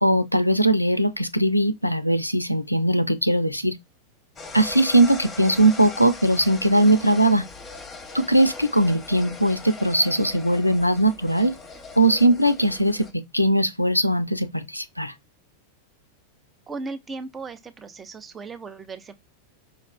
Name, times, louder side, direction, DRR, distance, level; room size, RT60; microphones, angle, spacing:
voice 1, 0.0-3.7 4.5-7.4 8.1-11.6 12.0-15.1, right 1 dB, 90° left, 0.3 m, -20 dB
sound 1, 4.4-13.1, left 3 dB, 20° left, 0.8 m, -40 dB
voice 2, 16.7-19.1, right 3 dB, 15° right, 0.5 m, -36 dB
5.1 x 2.2 x 2.3 m
figure-of-eight pair, 90°, 0 cm